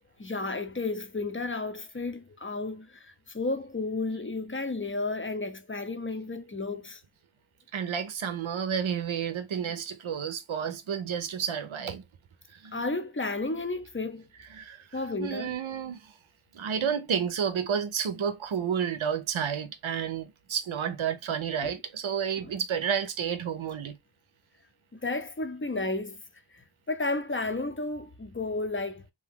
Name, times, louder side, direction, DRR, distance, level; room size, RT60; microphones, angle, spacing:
voice 1, 0.2-7.0 12.7-14.3 14.9-15.5 22.4-22.5 24.9-26.2 26.5-29.1, left 3 dB, 25° left, 0.5 m, -32 dB
voice 2, 7.7-12.0 12.5-12.8 14.5-16.1 16.5-24.0, right 7 dB, 75° right, 0.6 m, -31 dB
2.7 x 2.3 x 3.4 m
wide cardioid pair, 65°, 47 cm